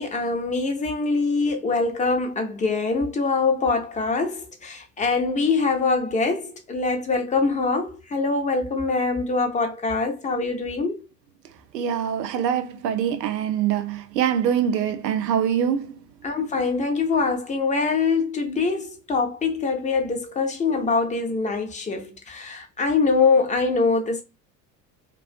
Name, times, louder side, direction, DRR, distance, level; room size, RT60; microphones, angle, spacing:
voice 1, 0.0-11.0 16.2-24.2, left 4 dB, 15° left, 0.6 m, -24 dB
voice 2, 11.7-15.9, right 8 dB, 80° right, 0.6 m, -24 dB
2.4 x 2.3 x 2.3 m
figure-of-eight pair, 75°, 49 cm